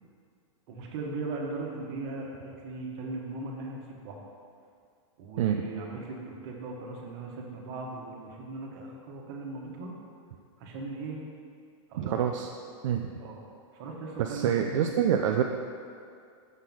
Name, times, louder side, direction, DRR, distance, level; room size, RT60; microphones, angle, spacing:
voice 1, 0.7-4.2 5.2-9.9 10.6-11.2 11.9-12.4 13.2-13.4 13.7-14.9, right 3 dB, 50° right, -1 dB, 1.3 m, -38 dB
voice 2, 12.0-12.5 12.8-13.0 14.2-15.4, right 9 dB, 70° right, 3 dB, 0.4 m, -26 dB
6.5 x 3.9 x 6.0 m, 2.3 s
supercardioid pair, 145°, 17 cm